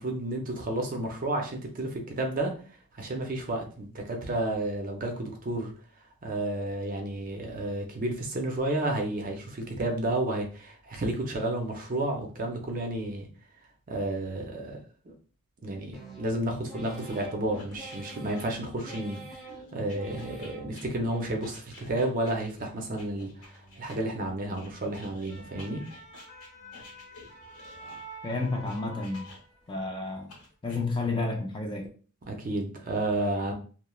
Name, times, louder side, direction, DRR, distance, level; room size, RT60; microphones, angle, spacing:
voice 1, 0.0-2.6 2.9-5.7 6.2-13.3 13.9-14.8 15.0-15.1 15.6-19.2 19.7-25.8 32.3-33.5, right 1 dB, 40° right, 0.5 m, -31 dB
sound 1, 15.9-21.8 22.2-22.8 23.3-23.9 24.4-25.0 25.5-26.1 26.6-27.1, right 3 dB, ahead, 0.7 m, -48 dB
sound 2, 17.1-24.0 24.5-29.7 30.3-30.8, left 2 dB, 80° left, 1.0 m, -51 dB
sound 3, 25.2-29.8 30.2-30.4, right 1 dB, 55° left, 0.9 m, -48 dB
voice 2, 28.2-29.3 29.7-30.3 30.6-31.9, left 3 dB, 20° left, 0.3 m, -31 dB
3.0 x 2.0 x 2.3 m
head